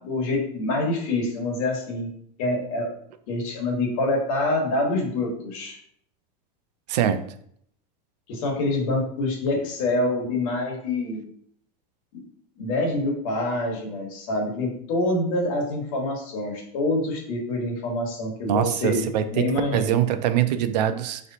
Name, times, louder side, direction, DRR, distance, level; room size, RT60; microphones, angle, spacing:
voice 1, 0.0-2.1 2.4-2.9 3.3-5.8 8.3-11.2 12.1-12.2 12.6-20.0, left 2 dB, 55° left, 0 dB, 1.4 m, -26 dB
voice 2, 6.9-7.2 18.5-21.2, right 10 dB, 75° right, 10 dB, 0.5 m, -23 dB
5.0 x 3.2 x 2.7 m, 0.66 s
supercardioid pair, 160°, 21 cm